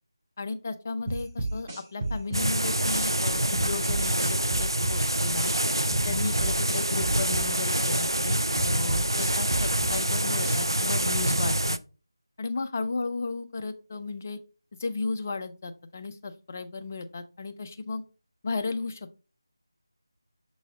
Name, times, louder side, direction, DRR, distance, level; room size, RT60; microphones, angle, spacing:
voice 1, 0.4-5.5 5.9-11.8 12.4-14.4 14.8-18.0 18.4-19.2, left 3 dB, 30° left, 7 dB, 0.6 m, -34 dB
sound 1, 1.1-3.1 3.6-5.6 5.9-8.1 8.6-10.8, right 2 dB, 20° right, 1.8 m, -31 dB
sound 2, 2.3-11.8, right 1 dB, 90° right, 0.5 m, -26 dB
6.6 x 4.1 x 3.6 m, 0.33 s
figure-of-eight pair, 165°, 2 cm